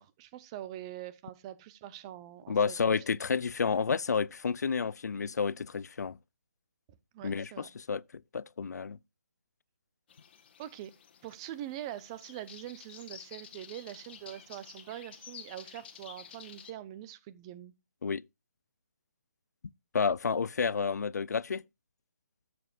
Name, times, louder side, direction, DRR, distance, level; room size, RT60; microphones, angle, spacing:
voice 1, 0.0-2.7 3.1-3.2 7.1-7.7 10.6-10.9 11.2-17.7, right 12 dB, 20° right, 0.7 m, -44 dB
voice 2, 2.5-6.2 7.2-8.0 8.3-9.0 18.0-18.2 19.9-21.6, left 5 dB, 80° left, 0.4 m, -30 dB
sound 1, 10.1-16.7, left 8 dB, 40° left, 1.5 m, -51 dB
11.0 x 7.9 x 2.4 m
hypercardioid pair, 160°, 9 cm